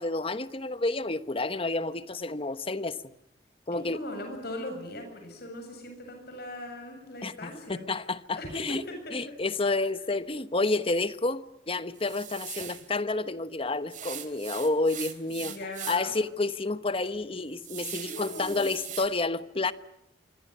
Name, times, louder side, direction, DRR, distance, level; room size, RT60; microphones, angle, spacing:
voice 1, 0.0-3.0 3.7-4.0 7.2-8.8 9.1-15.5 15.9-19.7, left 3 dB, 30° left, 1.1 m, -30 dB
voice 2, 3.7-7.9 8.3-9.2 15.4-16.1 18.0-18.7, left 1 dB, 60° left, 7.6 m, -39 dB
sound 1, 11.9-12.9 13.9-16.2 16.6-16.7 17.2-19.1, right 11 dB, 45° right, 3.2 m, -40 dB
26.0 x 24.5 x 9.5 m
head